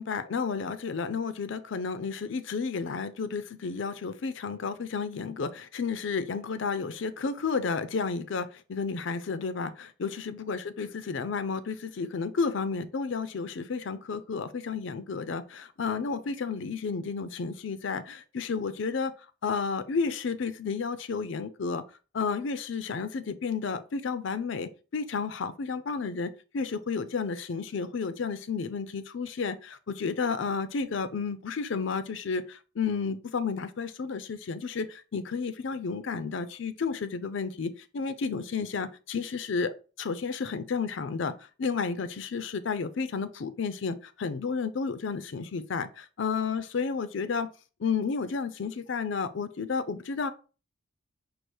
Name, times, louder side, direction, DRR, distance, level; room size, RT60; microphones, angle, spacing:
voice 1, 0.0-19.1 19.4-21.8 22.1-39.7 40.0-41.3 41.6-47.5 47.8-50.3, left 5 dB, 60° left, 0.5 m, -32 dB
4.7 x 2.5 x 4.4 m
head